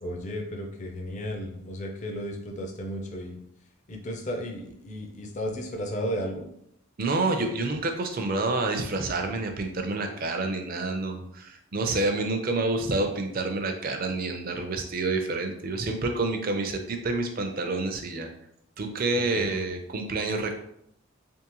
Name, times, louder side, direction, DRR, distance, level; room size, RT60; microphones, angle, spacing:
voice 1, 0.0-3.4 3.9-6.5 19.3-19.5, equal, 35° left, 2 dB, 0.5 m, -34 dB
voice 2, 7.0-18.3 18.8-20.6, right 2 dB, 45° right, 4 dB, 0.5 m, -28 dB
3.5 x 3.3 x 3.0 m, 0.74 s
head